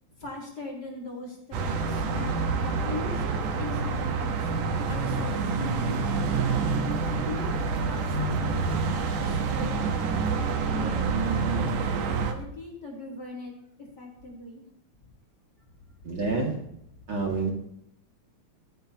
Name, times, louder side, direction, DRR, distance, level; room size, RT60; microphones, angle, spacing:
voice 1, 0.2-4.5 4.8-6.7 7.1-7.5 7.9-8.6 8.9-9.9 10.7-11.7 12.1-13.5 13.8-14.6, left 2 dB, 30° left, -2 dB, 4.9 m, -40 dB
sound 1, 1.5-12.3, right 4 dB, 90° right, 2.9 m, -27 dB
voice 2, 16.0-16.6 17.1-17.5, right 3 dB, 45° right, -2 dB, 2.9 m, -27 dB
26.0 x 9.1 x 2.9 m, 0.73 s
omnidirectional pair, 3.4 m